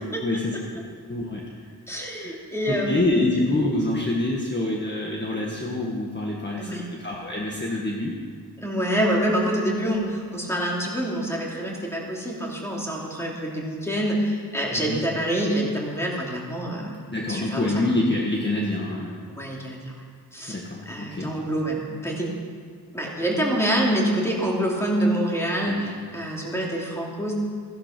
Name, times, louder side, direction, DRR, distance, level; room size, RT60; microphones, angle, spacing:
voice 1, 0.2-0.5 1.1-1.4 2.2-2.4 2.7-8.2 14.7-15.0 17.1-19.2 20.5-21.4 25.6-25.9, left 2 dB, 25° left, -3 dB, 1.6 m, -26 dB
voice 2, 1.9-3.2 6.6-6.9 8.6-17.0 17.3-17.7 19.3-19.9 20.3-20.6 20.9-22.3 22.9-27.3, right 1 dB, 5° left, -3 dB, 2.9 m, -26 dB
16.0 x 11.5 x 6.0 m, 2.1 s
wide cardioid pair, 110°, 40 cm